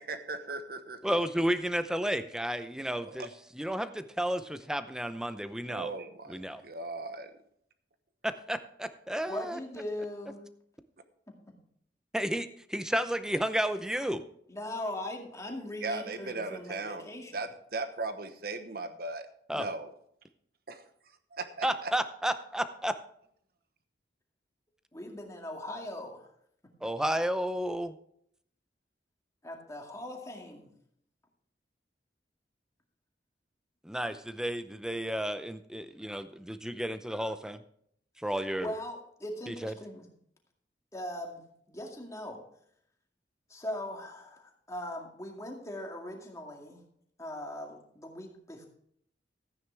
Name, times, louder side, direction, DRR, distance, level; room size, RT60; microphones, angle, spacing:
voice 1, 0.0-1.1 3.0-3.1 5.7-7.3 15.8-19.3 19.5-19.9 20.7-20.8 21.3-21.9, right 3 dB, 55° right, 9 dB, 1.1 m, -38 dB
voice 2, 1.0-3.3 3.5-5.9 6.3-6.6 8.2-9.6 12.1-14.2 19.5-19.7 21.6-22.9 26.8-27.9 33.8-37.6 38.2-38.7 39.5-39.7, equal, 5° right, 11 dB, 0.6 m, -32 dB
voice 3, 9.2-10.5 11.3-11.4 14.5-17.4 24.9-26.3 29.4-30.7 38.6-40.1 40.9-41.4 41.7-42.4 43.5-46.8 47.2-48.7, left 1 dB, 15° left, 1 dB, 2.1 m, -40 dB
14.0 x 9.4 x 3.4 m, 0.68 s
head